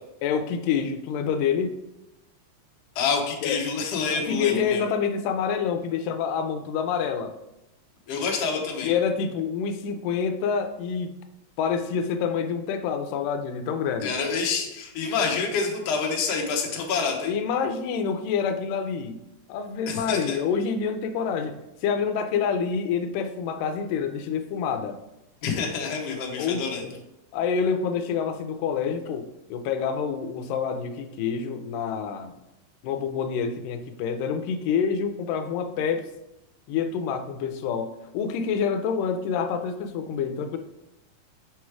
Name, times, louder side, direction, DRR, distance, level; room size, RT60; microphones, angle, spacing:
voice 1, 0.2-1.8 3.4-3.6 4.1-7.4 8.8-11.1 11.6-14.1 17.3-19.2 19.5-21.6 21.8-25.0 26.4-26.9 27.3-32.4 32.8-36.0 36.7-40.6, left 6 dB, 90° left, 7 dB, 2.2 m, -27 dB
voice 2, 2.9-4.8 8.1-8.9 14.0-17.3 19.9-20.4 25.4-26.8, left 5 dB, 65° left, 1 dB, 1.8 m, -27 dB
6.4 x 3.1 x 4.7 m, 0.89 s
omnidirectional pair, 3.8 m